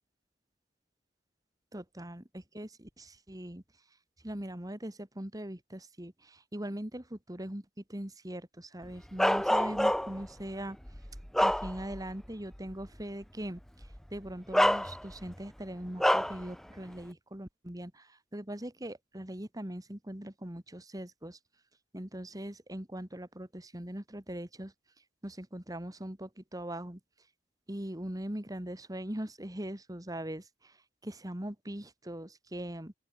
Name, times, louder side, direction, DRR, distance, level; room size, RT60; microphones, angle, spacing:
voice 1, 1.7-3.6 4.2-10.8 11.4-21.4 21.9-24.7 25.2-27.0 27.7-30.8 31.0-32.9, right 1 dB, 20° right, 2.2 m, -41 dB
Bark, 9.2-10.3 10.9-12.1 12.5-12.7 13.8-14.0 14.5-15.3 16.0-16.4, equal, ahead, 0.4 m, -27 dB
open air
head